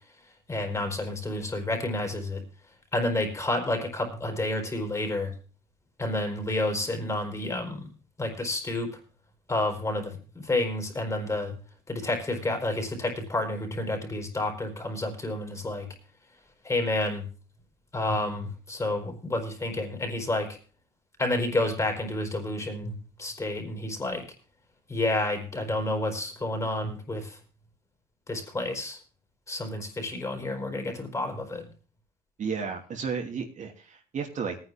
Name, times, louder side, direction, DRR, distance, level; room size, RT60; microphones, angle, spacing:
voice 1, 0.5-2.4 2.9-5.3 6.0-7.9 8.2-9.0 9.5-11.6 11.9-15.9 16.6-17.3 17.9-20.6 21.2-24.2 24.9-27.4 28.3-29.0 29.5-31.7, left 2 dB, 20° left, 4 dB, 4.7 m, -30 dB
voice 2, 32.4-34.6, right 6 dB, 45° right, 3 dB, 2.9 m, -33 dB
19.0 x 9.7 x 3.5 m, 0.37 s
cardioid pair, 110°, 17 cm